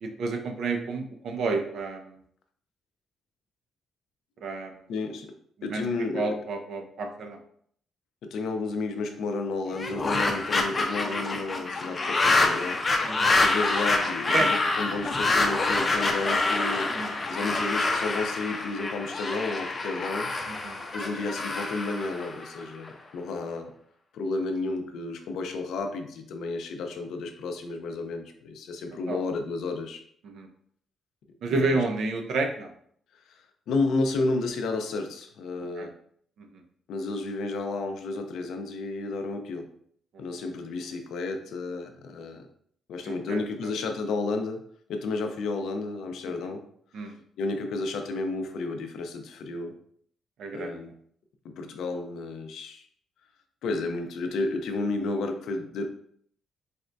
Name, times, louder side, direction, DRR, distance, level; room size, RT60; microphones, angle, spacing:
voice 1, 0.0-2.2 4.4-4.8 5.6-5.8 6.1-7.4 13.0-13.3 14.3-14.5 16.9-17.1 20.5-20.8 29.1-29.2 30.2-30.5 31.4-32.7 35.8-35.9 36.4-36.6 43.1-43.7 46.9-47.1 50.4-50.8, right 3 dB, 70° right, 4 dB, 0.5 m, -30 dB
voice 2, 4.9-5.3 5.6-6.3 8.2-16.9 17.3-20.3 20.9-23.7 24.1-30.0 31.5-31.8 33.1-35.9 36.9-39.7 40.2-42.5 42.9-44.6 44.9-46.6 47.0-49.7 50.5-50.9 51.4-52.9 53.6-55.9, left 3 dB, 75° left, 5 dB, 0.5 m, -32 dB
sound 1, 9.7-22.9, left 3 dB, 30° left, 0.5 m, -26 dB
4.1 x 2.2 x 2.5 m, 0.62 s
cardioid pair, 90°, 0 cm